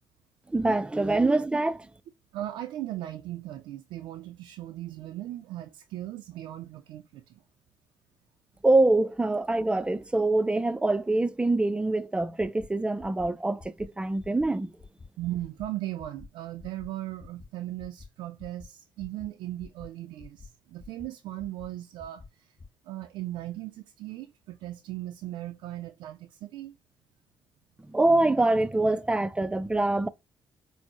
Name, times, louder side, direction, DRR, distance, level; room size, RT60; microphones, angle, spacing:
voice 1, 0.5-1.9 8.6-14.7 27.8-30.1, right 2 dB, 15° right, 0.3 m, -25 dB
voice 2, 2.3-7.4 15.2-22.5 22.8-26.7, right 14 dB, 90° right, 0.3 m, -38 dB
sound 1, 12.4-12.7 13.0-13.3 13.6-13.9 14.2-14.5 14.8-15.1 15.4-15.7 16.0-16.3 16.6-16.9 17.2-17.5 17.8-18.1 18.4-18.7 19.0-19.3 19.6-19.9 20.2-20.5 20.8-21.1 21.4-21.7 22.0-22.3 22.6-22.7, left 4 dB, 35° left, 0.8 m, -47 dB
4.3 x 2.0 x 2.9 m
cardioid pair, 80°, 8 cm